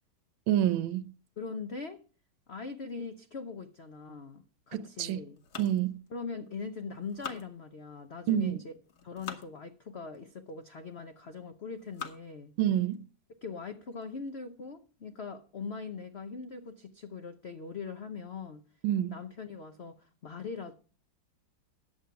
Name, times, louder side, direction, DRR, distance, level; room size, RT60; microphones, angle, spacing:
voice 1, 0.5-1.1 4.7-5.2 5.6-6.0 8.3-8.6 12.6-13.0 18.8-19.1, right 11 dB, 80° right, 1.5 m, -28 dB
voice 2, 1.4-2.0 2.5-5.4 6.1-8.7 9.0-12.5 13.4-18.6 19.1-20.7, left 5 dB, 75° left, 0.5 m, -41 dB
sound 1, 5.4-6.6 7.0-8.1 8.7-9.5 10.1-10.2 11.0-11.3 11.7-12.4 12.9-13.0 13.4-13.5 13.9-14.2, left 6 dB, 60° left, 1.8 m, -45 dB
11.0 x 7.7 x 5.7 m
omnidirectional pair, 2.3 m